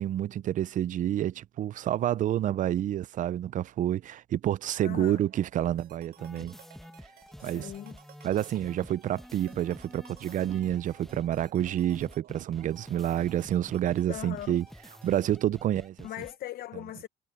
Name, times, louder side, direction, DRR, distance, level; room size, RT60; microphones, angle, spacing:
voice 1, 0.0-6.5 7.4-7.7 8.2-14.6 15.0-16.1, right 12 dB, 50° right, 0.5 m, -29 dB
voice 2, 4.8-5.2 7.4-8.0 14.1-14.6 16.0-17.1, left 12 dB, 60° left, 0.8 m, -39 dB
sound 1, 4.9-15.3, right 12 dB, 65° right, 5.2 m, -57 dB
sound 2, 6.2-16.4, equal, ahead, 1.5 m, -49 dB
cardioid pair, 110°, 17 cm